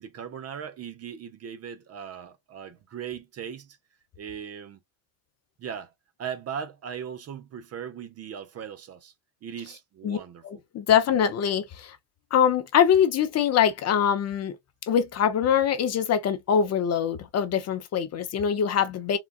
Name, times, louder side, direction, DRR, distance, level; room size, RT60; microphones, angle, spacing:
voice 1, 0.0-3.8 4.2-4.8 5.6-5.9 6.2-9.1 9.4-10.4, right 8 dB, 35° right, 0.5 m, -38 dB
voice 2, 10.4-12.0 12.3-14.5 14.9-19.2, left 8 dB, 35° left, 0.6 m, -23 dB
3.9 x 2.2 x 2.3 m
supercardioid pair, 105°, 43 cm